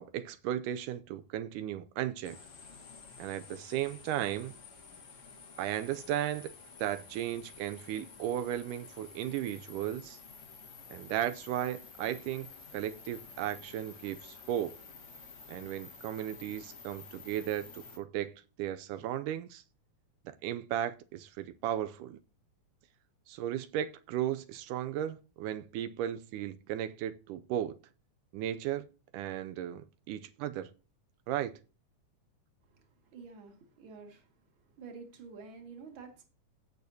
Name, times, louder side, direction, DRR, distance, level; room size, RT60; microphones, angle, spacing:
voice 1, 0.0-2.4 3.2-4.6 5.6-6.5 6.8-10.2 10.9-14.8 15.5-19.6 20.3-22.2 23.3-27.8 28.3-28.9 29.1-30.7 31.3-31.6, right 11 dB, 85° right, 2.1 m, -35 dB
sound 1, 2.2-18.0, left 5 dB, 40° left, 1.0 m, -51 dB
voice 2, 32.7-34.3 34.8-36.2, right 4 dB, 40° right, 2.5 m, -49 dB
17.0 x 6.5 x 2.8 m
omnidirectional pair, 3.6 m